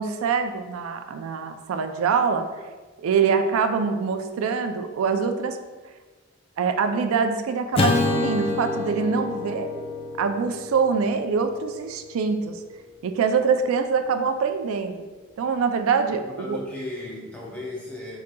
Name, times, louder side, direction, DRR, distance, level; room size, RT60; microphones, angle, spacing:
voice 1, 0.0-2.5 3.0-5.6 6.6-9.7 10.2-12.6 13.0-14.9 15.4-16.6, right 5 dB, 85° right, 7 dB, 0.3 m, -24 dB
Acoustic guitar / Strum, 7.7-12.2, left 3 dB, 25° left, 0.3 m, -27 dB
voice 2, 16.2-18.2, left 2 dB, 5° left, -4 dB, 0.7 m, -35 dB
4.8 x 3.8 x 2.2 m, 1.3 s
head